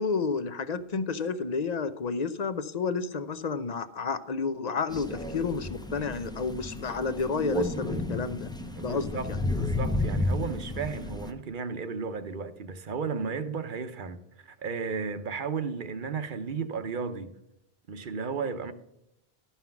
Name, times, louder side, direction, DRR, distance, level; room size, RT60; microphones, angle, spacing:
voice 1, 0.0-8.5 8.8-9.4, left 4 dB, 45° left, 0.7 m, -31 dB
Crow, 4.9-11.3, left 1 dB, 5° left, 0.6 m, -32 dB
voice 2, 8.8-17.3 17.9-18.7, right 5 dB, 55° right, 0.9 m, -34 dB
12.5 x 5.7 x 5.8 m
omnidirectional pair, 1.1 m